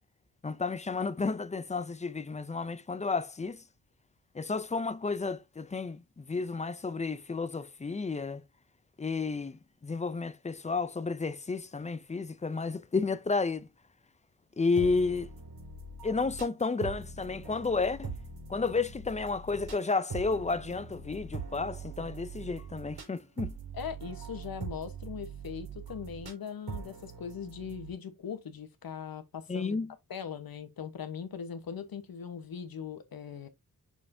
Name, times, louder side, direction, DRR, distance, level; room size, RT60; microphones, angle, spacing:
voice 1, 0.4-3.6 4.3-8.4 9.0-13.7 14.6-15.3 16.0-18.1 18.5-23.5 29.5-29.9, left 4 dB, 20° left, 0.4 m, -32 dB
sound 1, 14.8-27.9, right 4 dB, 90° right, 4.0 m, -42 dB
voice 2, 23.7-29.8 30.1-33.5, left 7 dB, 70° left, 1.1 m, -40 dB
6.4 x 5.5 x 2.6 m
wide cardioid pair, 165°, 37 cm